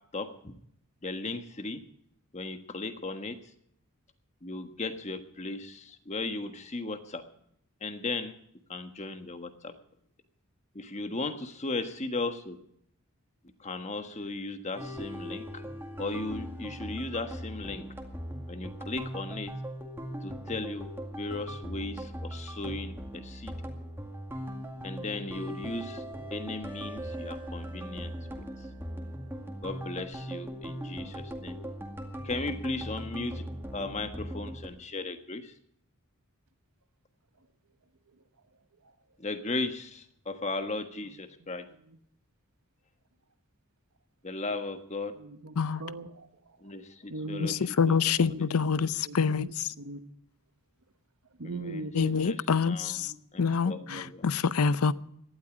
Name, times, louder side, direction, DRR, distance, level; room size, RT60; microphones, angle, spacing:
voice 1, 0.1-0.5 1.0-1.8 2.3-3.4 4.4-7.2 7.8-8.3 8.7-9.7 10.7-12.6 13.6-15.6 16.0-17.8 18.5-19.5 20.2-20.9 21.2-23.5 24.8-26.0 26.3-28.4 29.6-31.6 32.2-33.4 33.7-35.5 39.2-41.6 44.2-45.1 46.6-47.6 47.9-48.0 48.7-48.9 51.4-51.9 52.2-53.0 53.3-54.2, left 3 dB, 30° left, 1.4 m, -36 dB
sound 1, 14.8-34.7, equal, 10° right, 2.1 m, -39 dB
voice 2, 45.1-46.6 47.1-48.4 48.8-49.5 49.8-50.0 51.4-52.2 53.0-53.2 53.6-54.1, right 2 dB, 80° right, 1.3 m, -40 dB
voice 3, 47.4-49.5 51.9-53.1 53.4-54.9, left 5 dB, 85° left, 0.6 m, -26 dB
18.0 x 12.0 x 5.0 m
head